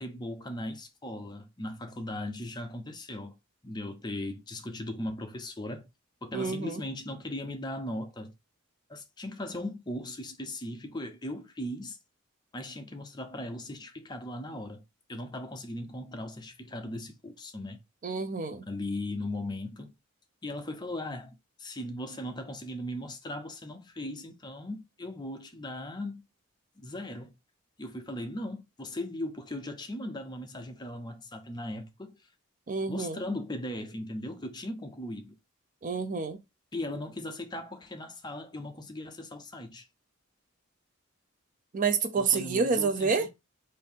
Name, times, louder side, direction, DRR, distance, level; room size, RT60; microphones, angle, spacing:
voice 1, 0.0-3.4 3.6-5.9 6.2-8.3 8.9-12.0 12.5-14.8 15.1-17.8 18.7-19.9 20.4-21.3 21.6-26.2 26.8-27.3 27.8-32.3 32.9-35.3 36.7-39.9 42.2-43.3, left 1 dB, 20° left, 0.6 m, -38 dB
voice 2, 6.3-6.8 18.0-18.7 32.7-33.2 35.8-36.4 41.7-43.3, right 4 dB, 40° right, 0.4 m, -28 dB
4.0 x 2.6 x 3.5 m
head